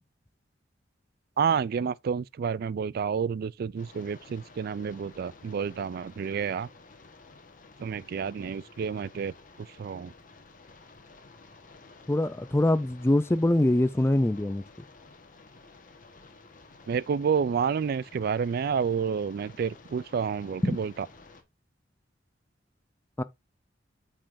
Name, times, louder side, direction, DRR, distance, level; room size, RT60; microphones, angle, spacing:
voice 1, 1.4-6.7 7.8-9.3 9.8-10.1 16.9-20.9, right 6 dB, 55° right, 0.3 m, -29 dB
sound 1, 3.8-21.4, left 3 dB, 45° left, 1.4 m, -53 dB
voice 2, 12.1-14.6 20.6-20.8 23.2-23.3, left 1 dB, 15° left, 0.4 m, -24 dB
8.6 x 5.5 x 2.6 m
head